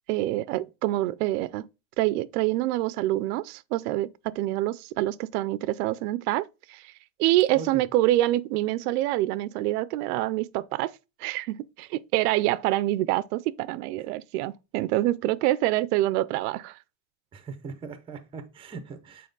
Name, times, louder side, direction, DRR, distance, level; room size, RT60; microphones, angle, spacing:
voice 1, 0.1-1.7 2.0-6.9 7.2-10.9 11.2-16.8, right 16 dB, 85° right, 0.6 m, -26 dB
voice 2, 17.3-19.3, right 4 dB, 10° right, 0.6 m, -40 dB
7.6 x 4.2 x 3.9 m
cardioid pair, 175°, 44 cm